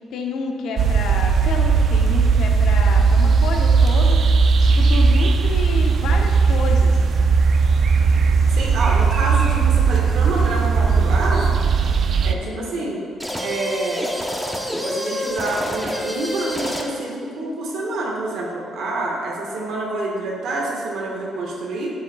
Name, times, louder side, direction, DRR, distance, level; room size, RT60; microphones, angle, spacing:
voice 1, 0.1-7.0 12.3-12.8, left 4 dB, 80° left, 2 dB, 0.7 m, -29 dB
sound 1, 0.8-12.3, right 5 dB, 60° right, 0.4 m, -17 dB
voice 2, 8.5-11.5 12.2-13.0 13.4-14.1 14.8-21.9, right 2 dB, 85° right, -2 dB, 1.4 m, -27 dB
sound 2, 13.2-17.1, equal, ahead, 0.8 m, -27 dB
8.0 x 7.0 x 2.3 m, 2.2 s
cardioid pair, 90°, 0 cm